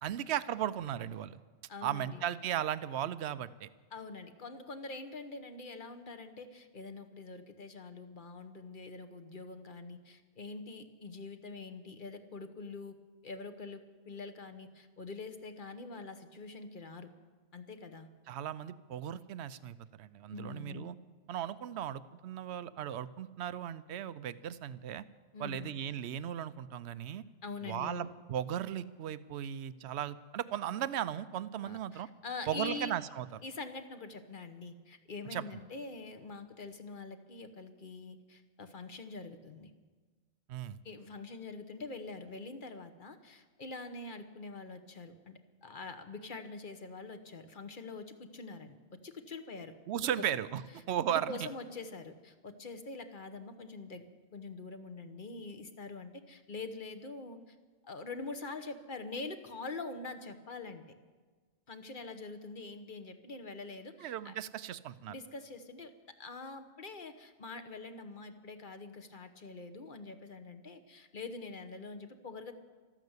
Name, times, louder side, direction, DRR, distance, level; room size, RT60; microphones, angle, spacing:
voice 1, 0.0-1.4 1.8-3.7 18.3-21.0 21.3-25.1 25.4-27.2 27.6-32.1 32.5-33.3 35.3-35.4 40.5-40.8 49.9-51.5 64.0-65.2, right 10 dB, 65° right, 15 dB, 0.8 m, -36 dB
voice 2, 1.7-2.2 3.9-13.0 13.2-17.1 17.5-18.1 20.3-20.9 25.3-25.7 27.4-28.1 31.6-32.9 33.4-39.7 40.8-50.2 51.1-54.0 54.3-57.5 57.8-60.8 61.7-64.4 65.1-65.9 66.2-72.5, left 3 dB, 45° left, 9 dB, 1.2 m, -45 dB
13.5 x 12.5 x 8.0 m, 1.4 s
omnidirectional pair, 1.3 m